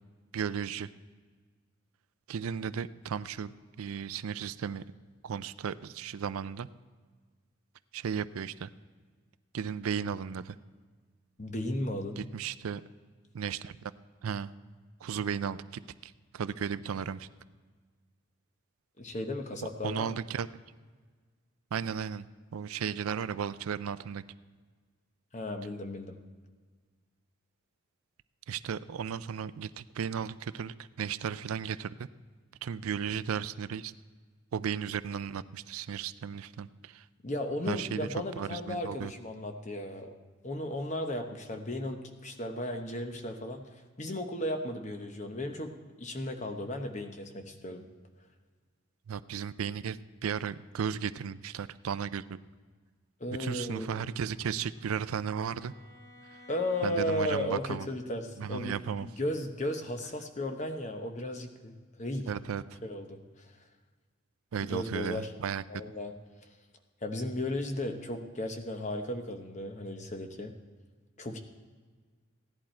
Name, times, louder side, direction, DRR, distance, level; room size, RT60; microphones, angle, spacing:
voice 1, 0.3-0.9 2.3-4.8 5.2-6.7 7.9-8.7 9.5-10.6 12.2-12.8 13.3-13.9 14.2-14.5 15.0-17.3 19.8-20.5 21.7-22.2 22.5-24.2 28.5-32.1 32.6-33.9 34.5-37.1 37.7-38.1 38.4-39.1 49.1-52.4 53.4-55.7 56.8-57.9 58.4-59.1 62.3-62.6 64.5-65.6, right 7 dB, 90° right, 15 dB, 0.4 m, -35 dB
voice 2, 11.4-12.2 19.0-20.2 25.3-26.2 37.2-40.1 40.4-43.7 44.0-45.7 46.0-47.9 53.2-54.1 56.5-58.7 59.0-62.3 62.8-63.5 64.7-65.3 65.7-66.1 67.0-70.5 71.2-71.4, left 1 dB, 35° left, 5 dB, 0.9 m, -35 dB
Bowed string instrument, 54.0-57.9, equal, 15° left, 1.3 m, -54 dB
16.0 x 11.0 x 4.4 m, 1.5 s
head